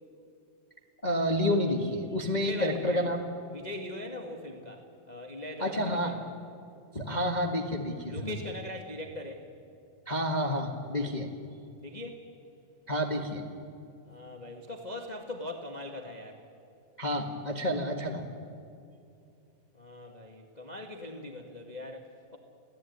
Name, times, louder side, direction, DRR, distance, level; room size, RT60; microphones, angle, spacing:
voice 1, 1.0-3.2 5.6-6.1 6.9-8.4 10.0-11.3 12.9-13.5 17.0-18.2, equal, 45° left, 3 dB, 0.5 m, -29 dB
voice 2, 2.3-3.1 3.5-6.1 8.1-9.5 11.8-12.2 14.1-16.4 19.7-22.4, left 1 dB, 25° left, 3 dB, 0.9 m, -41 dB
29.5 x 17.5 x 9.5 m, 2.6 s
omnidirectional pair, 4.0 m